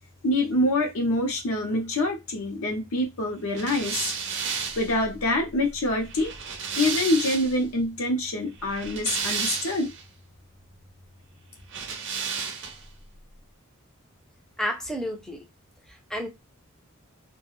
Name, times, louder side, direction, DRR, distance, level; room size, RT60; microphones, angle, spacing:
voice 1, 0.2-4.1 4.8-6.3 6.7-9.9, left 1 dB, 70° left, 0.6 m, -25 dB
sound 1, 3.6-7.7 8.6-10.0 11.7-12.9, right 6 dB, 55° right, 0.6 m, -32 dB
voice 2, 14.6-15.4 15.9-16.3, equal, 5° left, 0.5 m, -31 dB
2.4 x 2.1 x 3.0 m
head